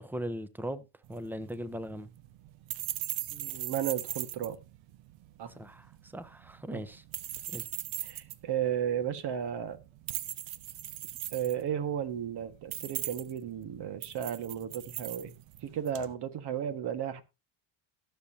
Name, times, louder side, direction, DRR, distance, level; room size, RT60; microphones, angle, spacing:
voice 1, 0.0-2.1 5.6-7.0 7.5-7.6, equal, 5° right, 0.9 m, -39 dB
sound 1, 1.0-16.1, right 14 dB, 70° right, 1.0 m, -40 dB
voice 2, 3.3-4.6 5.4-5.5 6.7-6.8 8.0-9.8 11.3-15.4 15.6-17.2, right 9 dB, 55° right, 1.8 m, -34 dB
19.0 x 7.2 x 2.8 m
supercardioid pair, 95°, 49 cm